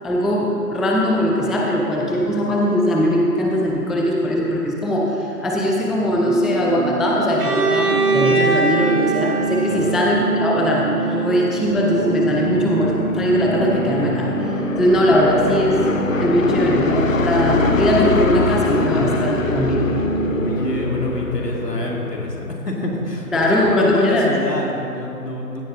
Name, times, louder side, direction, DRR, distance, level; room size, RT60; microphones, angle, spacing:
voice 1, 0.0-15.9 16.2-19.9 23.3-24.3, equal, ahead, -2 dB, 0.4 m, -20 dB
sound 1, 6.2-20.5, right 3 dB, 30° right, 1.8 m, -26 dB
Bowed string instrument, 7.4-11.2, right 4 dB, 70° right, 1.5 m, -22 dB
sound 2, 11.6-22.6, left 4 dB, 55° left, 0.5 m, -24 dB
voice 2, 20.3-25.6, left 1 dB, 75° left, -1 dB, 2.0 m, -25 dB
15.5 x 7.0 x 3.0 m, 2.7 s
figure-of-eight pair, 155°, 48 cm